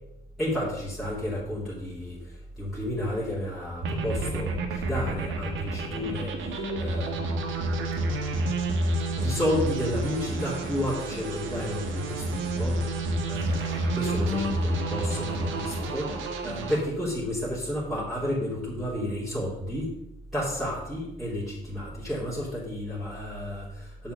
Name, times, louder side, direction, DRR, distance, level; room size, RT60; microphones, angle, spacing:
voice 1, 0.4-8.3 9.2-19.9 20.3-24.1, equal, ahead, -10 dB, 3.0 m, -32 dB
sound 1, 3.8-16.8, right 1 dB, 80° right, 1.5 m, -29 dB
6.9 x 5.8 x 6.8 m, 0.88 s
cardioid pair, 90°, 20 cm